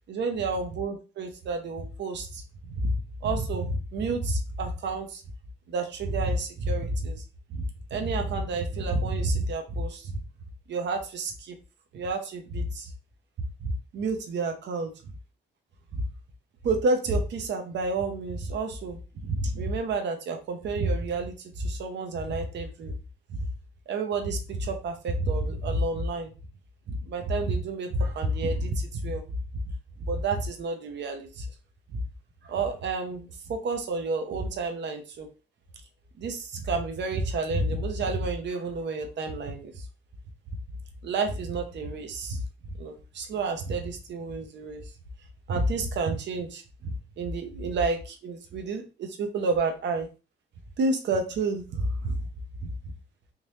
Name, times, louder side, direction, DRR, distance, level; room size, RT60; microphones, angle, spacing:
voice 1, 0.1-2.4 2.8-2.9 3.2-5.2 5.7-7.2 7.5-7.6 7.9-10.2 10.7-11.6 11.9-12.9 13.6-14.9 15.9-16.0 16.6-22.9 23.3-23.4 23.9-26.3 26.9-29.2 30.0-31.5 31.9-32.0 32.4-35.3 36.2-39.8 41.0-42.4 42.8-44.8 45.5-50.1 50.8-52.2 52.6-52.7, right 2 dB, 65° right, 5 dB, 0.8 m, -30 dB
3.7 x 2.7 x 3.1 m, 0.33 s
cardioid pair, 90°, 20 cm